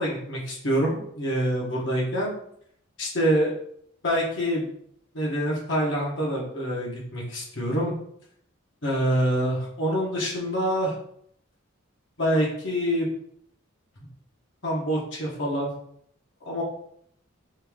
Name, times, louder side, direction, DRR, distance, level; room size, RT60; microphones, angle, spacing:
voice 1, 0.0-2.3 3.0-3.5 4.0-4.7 5.1-7.9 8.8-10.9 12.2-13.1 14.6-15.7 16.4-16.6, equal, 60° left, -3 dB, 1.2 m, -26 dB
5.3 x 2.6 x 3.6 m, 0.67 s
head